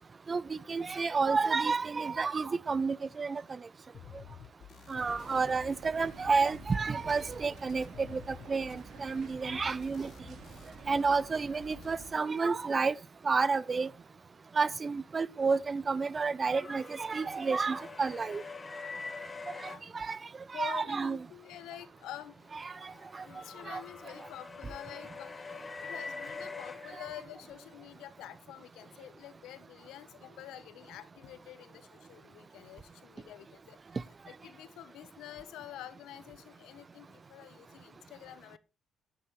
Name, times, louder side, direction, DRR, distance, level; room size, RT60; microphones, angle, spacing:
voice 1, 0.3-3.4 4.9-10.1 10.9-12.9 13.2-13.9 14.6-18.4 19.6-20.2 20.5-21.2 22.5-23.2 23.7-23.8, right 4 dB, 35° right, 0.5 m, -30 dB
sound 1, 3.9-11.2 11.5-11.9, left 9 dB, 70° left, 0.6 m, -53 dB
sound 2, 4.9-12.1, right 4 dB, 65° right, 3.5 m, -49 dB
sound 3, 16.5-19.8 22.2-27.7, left 4 dB, 30° left, 1.4 m, -45 dB
voice 2, 19.5-19.8 20.5-22.4 23.2-33.9 34.3-38.6, left 12 dB, 90° left, 1.1 m, -48 dB
11.0 x 9.8 x 3.2 m
cardioid pair, 90°, 0 cm